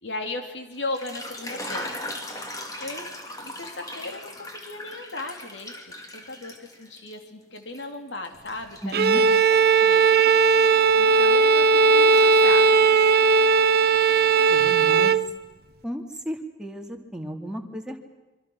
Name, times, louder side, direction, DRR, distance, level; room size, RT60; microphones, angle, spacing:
voice 1, 0.0-2.0 2.8-3.1 3.4-9.4 9.7-10.1 10.9-12.8, left 2 dB, 85° left, 5 dB, 3.0 m, -36 dB
sound 1, 0.8-7.2 7.6-11.7 12.0-12.8, left 1 dB, 20° left, 2.9 m, -39 dB
voice 2, 8.8-9.2 14.5-15.2 15.8-18.0, equal, 5° right, 2 dB, 2.4 m, -34 dB
Bowed string instrument, 8.9-15.3, right 5 dB, 60° right, 0.8 m, -18 dB
26.5 x 24.5 x 6.3 m, 1.2 s
head